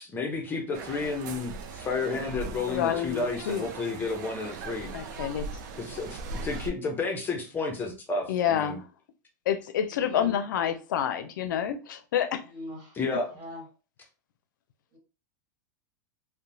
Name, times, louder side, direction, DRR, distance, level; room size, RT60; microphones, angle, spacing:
voice 1, 0.0-4.9 5.8-8.8 13.0-13.3, left 3 dB, 20° left, 2 dB, 0.7 m, -31 dB
sound 1, 0.7-6.7, right 4 dB, 70° right, 0.4 m, -39 dB
voice 2, 2.7-3.7 4.9-5.5 8.3-8.8 9.5-12.4, left 9 dB, 80° left, 9 dB, 0.4 m, -28 dB
voice 3, 6.1-6.5 9.8-10.3 12.4-13.0 13.3-13.6 14.9-15.0, left 1 dB, 40° right, 0 dB, 1.3 m, -43 dB
2.9 x 2.1 x 2.6 m, 0.33 s
supercardioid pair, 130°, 10 cm